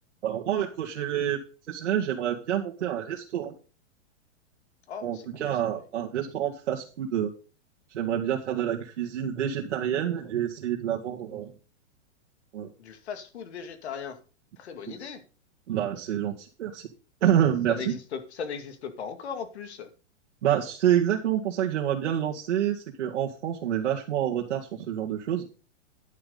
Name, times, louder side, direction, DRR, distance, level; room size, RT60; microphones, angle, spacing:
voice 1, 0.2-1.4 1.7-3.5 5.0-7.3 7.9-11.5 12.5-12.7 14.9-15.0 15.7-16.9 17.2-17.9 20.4-25.5, right 10 dB, 65° right, -3 dB, 2.1 m, -27 dB
voice 2, 4.9-5.8 12.8-14.2 14.6-15.2 17.7-19.9, left 6 dB, 60° left, 8 dB, 2.4 m, -38 dB
11.0 x 8.9 x 4.0 m, 0.36 s
supercardioid pair, 180°, 36 cm